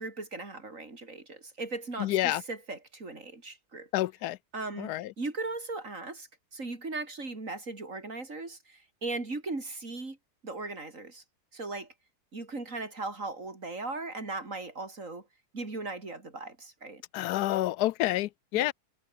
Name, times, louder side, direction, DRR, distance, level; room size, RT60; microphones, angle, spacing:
voice 1, 0.0-3.9 4.5-10.2 10.4-11.2 11.5-11.9 12.3-15.3 15.5-17.0 18.5-18.7, right 3 dB, 55° right, 4.3 m, -38 dB
voice 2, 2.0-2.4 3.9-4.4 4.8-5.1 17.1-18.7, left 15 dB, 85° left, 1.1 m, -28 dB
omnidirectional pair, 1.7 m